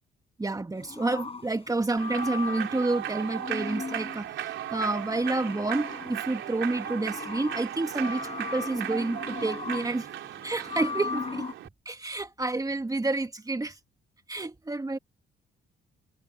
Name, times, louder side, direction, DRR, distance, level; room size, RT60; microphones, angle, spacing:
voice 1, 0.4-10.1 10.4-11.4 11.9-13.8 14.3-15.0, right 2 dB, 15° right, 1.8 m, -29 dB
sound 1, 0.8-11.5, left 4 dB, 30° left, 6.3 m, -39 dB
Human voice / Clapping / Cheering, 2.0-11.7, right 12 dB, 80° right, 3.2 m, -37 dB
cardioid pair, 90°, 20 cm